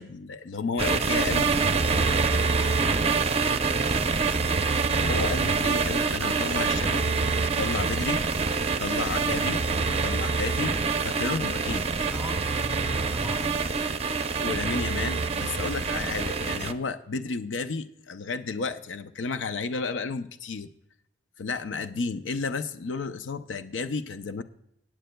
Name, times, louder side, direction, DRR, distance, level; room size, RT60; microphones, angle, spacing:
voice 1, 0.0-2.1 5.0-7.1 7.6-8.3 8.8-9.7 10.0-12.1 14.4-20.7 21.4-24.4, left 4 dB, 85° left, 10 dB, 0.5 m, -32 dB
sound 1, 0.8-16.7, right 4 dB, 35° right, 0.6 m, -26 dB
voice 2, 2.5-4.2 12.1-13.5, equal, 5° right, 3 dB, 2.1 m, -40 dB
18.0 x 8.9 x 2.2 m, 0.78 s
head